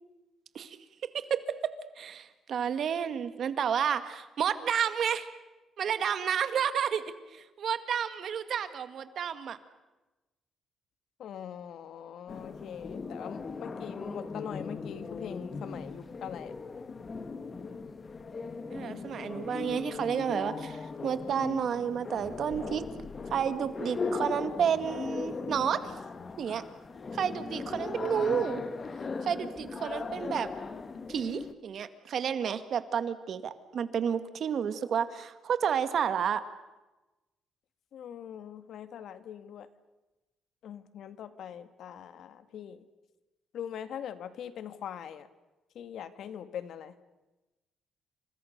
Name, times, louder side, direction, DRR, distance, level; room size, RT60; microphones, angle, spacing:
voice 1, 1.3-5.3 5.8-7.0 7.3-9.6 18.7-22.8 23.3-25.9 26.4-26.6 27.1-28.6 29.2-30.5 31.1-36.4, right 8 dB, 60° right, 11 dB, 1.9 m, -31 dB
voice 2, 11.2-16.5 37.9-39.7 40.6-42.9 43.5-45.3 45.8-46.9, left 9 dB, 70° left, 12 dB, 1.7 m, -42 dB
sound 1, 12.3-31.5, left 4 dB, 35° left, 1.9 m, -38 dB
29.0 x 26.5 x 6.7 m, 1.1 s
cardioid pair, 90°, 0 cm